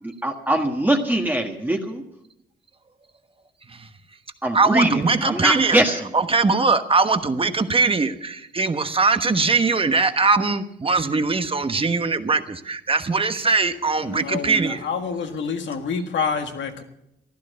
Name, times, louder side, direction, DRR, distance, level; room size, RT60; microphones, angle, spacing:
voice 1, 0.0-2.0 4.4-6.1, right 1 dB, 10° right, 2 dB, 1.6 m, -22 dB
voice 2, 4.5-5.8 6.1-14.9, right 4 dB, 30° right, 9 dB, 1.2 m, -21 dB
voice 3, 14.1-16.8, left 5 dB, 70° left, 5 dB, 1.8 m, -27 dB
15.0 x 12.0 x 6.7 m, 0.82 s
cardioid pair, 80°, 20 cm